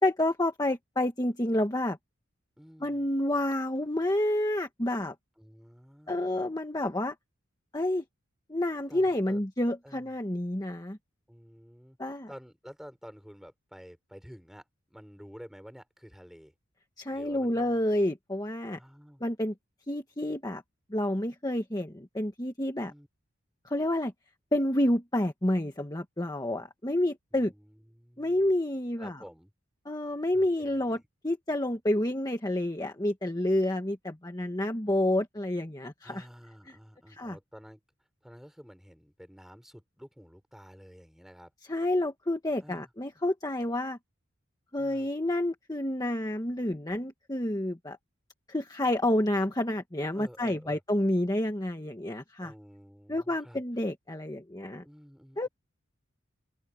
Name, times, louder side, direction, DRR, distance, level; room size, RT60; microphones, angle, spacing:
voice 1, 0.0-2.0 2.8-5.1 6.1-7.1 7.7-8.0 8.5-11.0 12.0-12.3 17.0-18.8 19.2-19.5 19.9-20.6 20.9-22.9 23.6-24.1 24.5-27.5 28.2-29.2 29.8-36.2 36.7-36.8 37.1-37.4 41.7-44.0 44.7-48.0 48.5-52.5 53.1-54.8 55.4-55.5, left 1 dB, 20° left, 1.5 m, -29 dB
voice 2, 2.6-3.0 5.4-6.2 8.9-9.4 9.8-10.1 11.3-16.5 17.1-17.8 18.7-19.2 22.8-23.1 27.3-28.5 29.0-29.5 30.3-31.0 36.0-37.8 38.2-41.5 42.6-42.9 44.8-45.1 50.1-50.8 52.4-53.6 54.8-55.5, equal, ahead, 5.4 m, -51 dB
open air
head